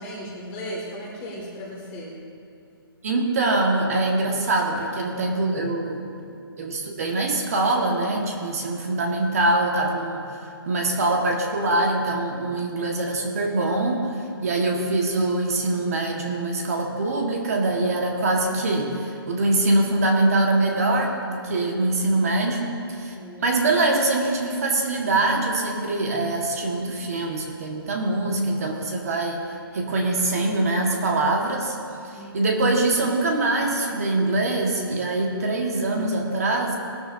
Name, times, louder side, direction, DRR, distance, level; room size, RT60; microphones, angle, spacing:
voice 1, 0.0-2.1 22.6-23.5 32.1-32.8, equal, 10° left, -4 dB, 1.8 m, -37 dB
voice 2, 3.0-6.0 6.6-23.1 23.4-29.4 29.7-31.8 32.0-36.8, right 2 dB, 40° right, 1 dB, 1.4 m, -23 dB
19.5 x 12.5 x 2.6 m, 2.5 s
hypercardioid pair, 175°, 13 cm